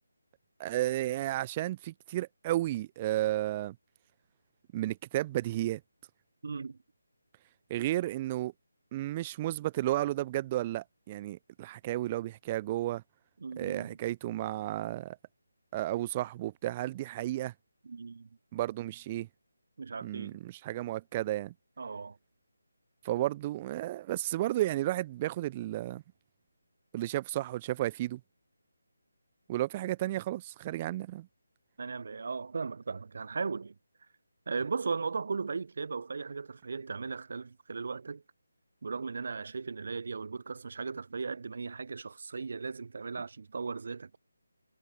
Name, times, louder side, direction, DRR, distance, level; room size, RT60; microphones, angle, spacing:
voice 1, 0.6-3.8 4.7-5.8 7.7-8.5 8.9-13.0 13.6-15.2 15.7-17.5 18.5-19.3 20.0-21.5 23.0-26.0 26.9-28.2 29.5-31.3, right 15 dB, 20° right, 0.4 m, -32 dB
voice 2, 6.4-6.8 13.4-14.0 17.8-18.3 19.8-20.4 21.8-22.2 31.8-33.7 34.5-38.2 38.8-44.2, right 4 dB, 50° right, 0.7 m, -37 dB
figure-of-eight pair, 155°, 0 cm